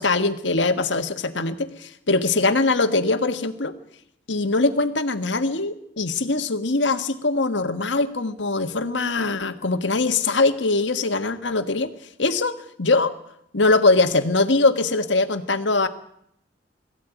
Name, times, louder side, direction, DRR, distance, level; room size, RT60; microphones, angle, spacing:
voice 1, 0.0-3.7 4.3-11.9 12.2-13.1 13.5-15.9, left 3 dB, 85° left, 8 dB, 1.7 m, -22 dB
21.5 x 15.0 x 9.3 m, 0.74 s
head